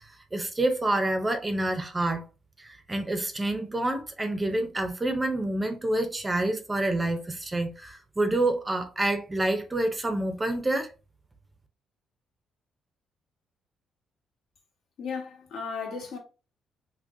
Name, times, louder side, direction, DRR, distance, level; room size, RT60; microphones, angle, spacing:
voice 1, 0.0-2.2 2.6-10.9, right 1 dB, 15° right, 0.5 m, -28 dB
voice 2, 15.0-16.2, left 5 dB, 70° left, 1.1 m, -35 dB
3.8 x 2.8 x 2.5 m
cardioid pair, 145°, 0 cm